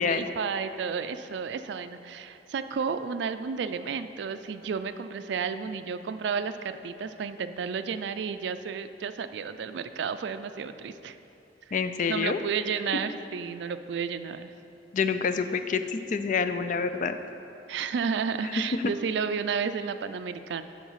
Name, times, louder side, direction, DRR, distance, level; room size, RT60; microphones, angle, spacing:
voice 1, 0.0-11.2 11.7-11.8 12.1-14.5 17.7-20.6, right 6 dB, 70° right, 11 dB, 0.3 m, -32 dB
voice 2, 11.7-12.4 14.9-17.2 18.8-18.9, left 5 dB, 45° left, 9 dB, 0.4 m, -27 dB
10.5 x 3.9 x 5.6 m, 2.8 s
head